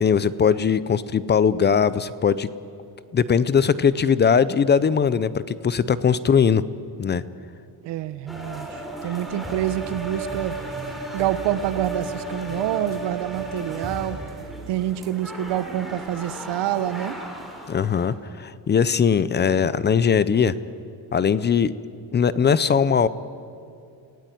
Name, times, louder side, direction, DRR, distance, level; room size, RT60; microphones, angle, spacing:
voice 1, 0.0-2.5 3.1-6.6 7.0-7.2 17.7-20.5 21.1-21.7 22.1-23.1, left 7 dB, 25° left, 16 dB, 0.5 m, -20 dB
voice 2, 7.8-10.5 11.1-14.2 14.7-17.2, right 12 dB, 90° right, 14 dB, 1.1 m, -27 dB
sound 1, 8.3-18.2, right 2 dB, ahead, 3.6 m, -34 dB
29.0 x 17.0 x 9.2 m, 2.5 s
cardioid pair, 160°, 41 cm